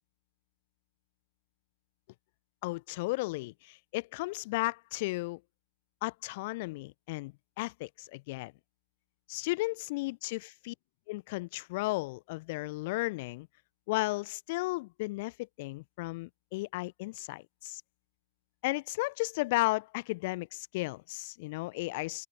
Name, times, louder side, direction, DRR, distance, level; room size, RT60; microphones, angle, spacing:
voice 1, 2.6-5.4 6.0-8.5 9.3-10.7 11.1-13.5 13.9-17.8 18.6-22.3, left 22 dB, 65° left, 0.7 m, -34 dB
open air
figure-of-eight pair, 65°, 0 cm